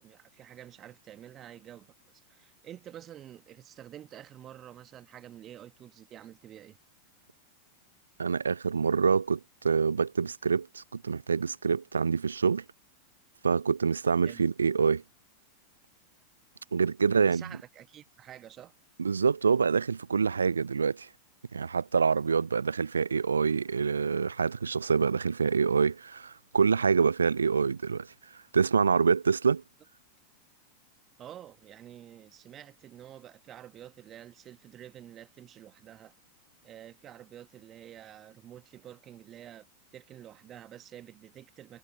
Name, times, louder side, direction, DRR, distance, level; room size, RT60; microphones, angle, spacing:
voice 1, 0.0-1.9 2.3-6.8 14.2-14.4 17.0-18.7 31.2-36.1 36.6-39.7 39.9-41.8, right 11 dB, 30° right, 1.7 m, -49 dB
voice 2, 8.2-9.4 9.6-12.6 13.4-15.0 16.7-17.4 19.0-21.1 21.5-28.1 28.5-29.6, right 5 dB, 75° right, 0.4 m, -26 dB
figure-of-eight pair, 90°, 0 cm